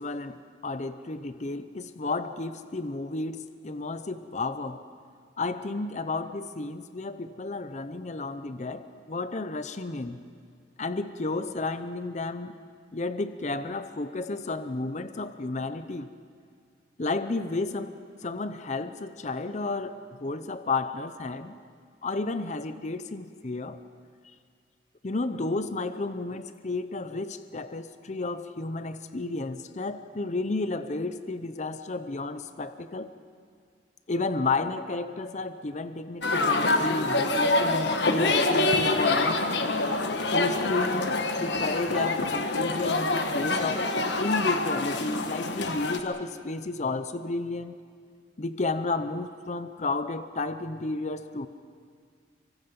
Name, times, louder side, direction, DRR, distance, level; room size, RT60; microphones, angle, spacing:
voice 1, 0.0-4.8 5.4-10.2 10.8-12.6 12.9-16.1 17.0-17.9 18.2-21.6 22.0-23.8 25.0-33.1 34.1-39.4 40.3-43.9 44.2-47.8 48.4-51.5, left 3 dB, 40° left, 11 dB, 0.7 m, -32 dB
sound 1, 36.2-46.0, left 2 dB, 65° left, 1.4 m, -26 dB
26.0 x 24.0 x 5.5 m, 2.2 s
head